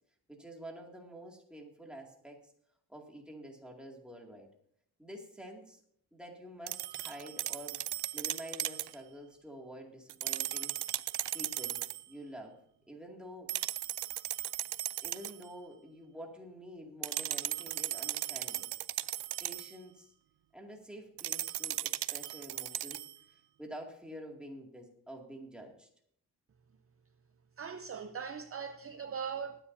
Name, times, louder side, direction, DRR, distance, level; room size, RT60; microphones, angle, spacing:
voice 1, 0.3-2.5 2.9-4.5 5.0-5.8 6.1-7.8 8.1-10.8 11.3-11.8 12.1-12.6 12.9-13.5 15.0-18.7 19.4-20.1 20.5-23.0 23.6-25.9, equal, ahead, 2.2 m, -48 dB
sound 1, 6.7-9.0 10.1-12.0 13.5-15.4 17.0-19.8 21.2-23.2, right 14 dB, 80° right, 0.5 m, -37 dB
voice 2, 27.6-29.6, right 6 dB, 35° right, 0.6 m, -40 dB
21.0 x 9.8 x 2.7 m
wide cardioid pair, 135°, 40 cm